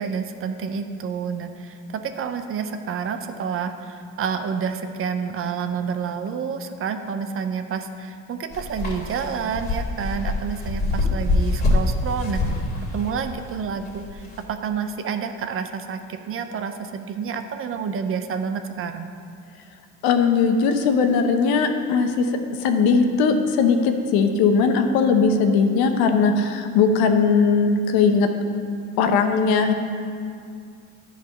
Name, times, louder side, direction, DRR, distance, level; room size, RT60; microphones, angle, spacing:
voice 1, 0.0-12.6 12.9-19.1, right 6 dB, 35° right, 8 dB, 0.6 m, -29 dB
sound 1, 8.5-14.4, left 2 dB, 25° left, 2.4 m, -25 dB
voice 2, 20.0-22.3 22.6-28.3 29.0-29.7, left 5 dB, 70° left, 6 dB, 1.0 m, -19 dB
10.5 x 4.1 x 6.7 m, 2.3 s
supercardioid pair, 100°, 37 cm